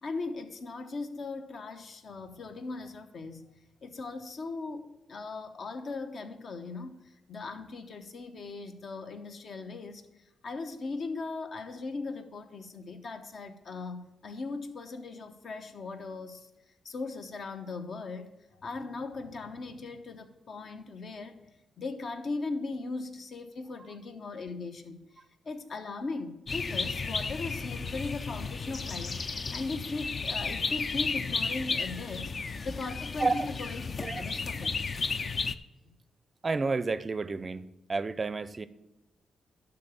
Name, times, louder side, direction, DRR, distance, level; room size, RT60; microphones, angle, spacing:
voice 1, 0.0-3.4 3.8-7.0 7.3-10.0 10.4-16.5 16.8-18.3 18.6-21.4 21.8-25.0 25.5-32.3 32.6-33.8 34.1-34.7, left 3 dB, 55° left, 1.0 m, -38 dB
sound 1, 26.5-35.5, left 4 dB, 35° left, 0.4 m, -33 dB
voice 2, 36.4-37.6 37.9-38.7, right 3 dB, 30° right, 0.5 m, -30 dB
11.5 x 3.9 x 7.1 m
cardioid pair, 110°, 0 cm